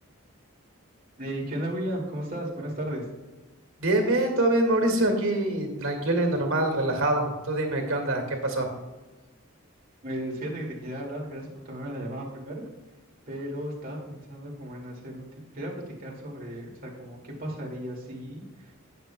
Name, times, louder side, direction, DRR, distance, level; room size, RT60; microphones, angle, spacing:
voice 1, 1.2-3.0 10.0-12.6 13.3-15.3 15.5-18.8, right 1 dB, 45° right, -2 dB, 2.4 m, -35 dB
voice 2, 3.8-8.7, right 1 dB, 80° right, 2 dB, 2.1 m, -25 dB
17.0 x 7.3 x 2.3 m, 1.2 s
head